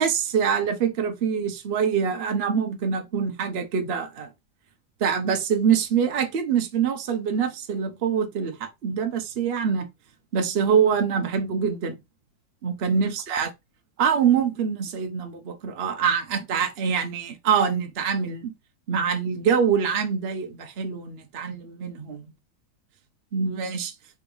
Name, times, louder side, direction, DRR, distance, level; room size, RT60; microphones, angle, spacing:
voice 1, 0.0-4.3 5.0-9.9 10.3-12.0 12.6-13.5 14.0-18.5 18.9-22.2 23.3-23.9, right 7 dB, 55° right, 0.7 m, -24 dB
3.9 x 3.5 x 3.7 m
omnidirectional pair, 2.0 m